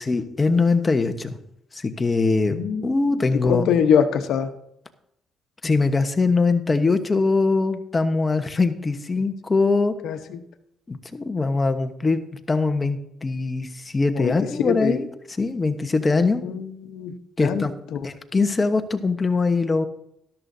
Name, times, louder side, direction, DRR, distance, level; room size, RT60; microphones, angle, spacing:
voice 1, 0.0-1.4 1.7-3.7 5.6-9.9 10.9-15.1 15.4-16.4 17.4-17.7 18.0-19.9, left 3 dB, 25° left, 8 dB, 1.1 m, -22 dB
voice 2, 2.5-2.9 3.3-4.5 10.0-10.4 14.2-14.3 14.6-15.0 16.4-17.1 17.4-17.6 17.9-18.0, left 7 dB, 80° left, 7 dB, 1.0 m, -23 dB
13.0 x 13.0 x 2.7 m, 0.75 s
cardioid pair, 90°, 0 cm